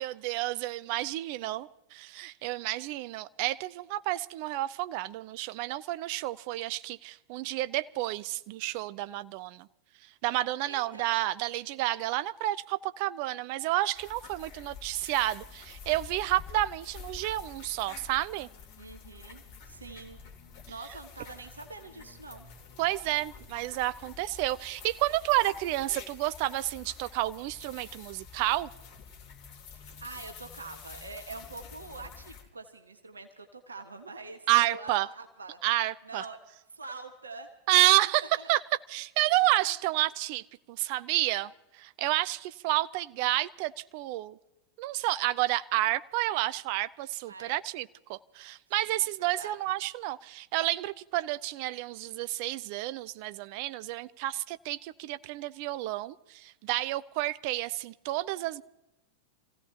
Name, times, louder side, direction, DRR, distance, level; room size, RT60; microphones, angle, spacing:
voice 1, 0.0-9.7 10.2-18.5 22.8-28.7 34.5-35.1 35.6-36.2 37.7-38.6 38.9-41.5 41.8-44.4 44.8-58.6, right 16 dB, 45° right, 16 dB, 0.5 m, -30 dB
voice 2, 10.6-11.1 18.8-20.2 20.7-22.5 29.7-35.6 36.0-36.4 36.7-37.5 38.2-38.5 39.4-39.7 47.3-47.6 48.8-49.5, right 3 dB, 75° right, 6 dB, 1.4 m, -45 dB
sound 1, 13.9-32.4, left 6 dB, 40° left, 3.0 m, -48 dB
27.5 x 16.0 x 2.9 m, 0.94 s
figure-of-eight pair, 90°, 0 cm